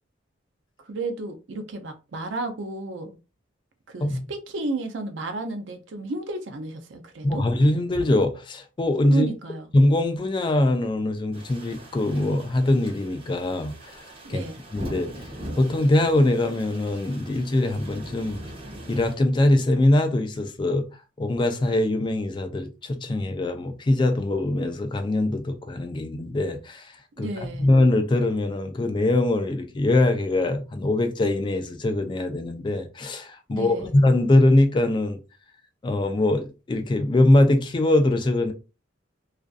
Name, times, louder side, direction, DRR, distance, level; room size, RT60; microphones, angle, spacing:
voice 1, 0.8-3.2 3.9-7.4 9.1-9.7 14.2-14.6 27.1-27.7 33.5-33.9, right 3 dB, 70° right, 0.5 m, -32 dB
voice 2, 7.2-9.3 9.7-14.4 14.7-18.4 18.9-20.9 21.2-27.3 27.6-35.2 35.8-38.5, left 1 dB, 25° left, 0.3 m, -22 dB
sound 1, 11.3-19.1, right 1 dB, 30° right, 0.8 m, -41 dB
2.4 x 2.4 x 2.3 m
head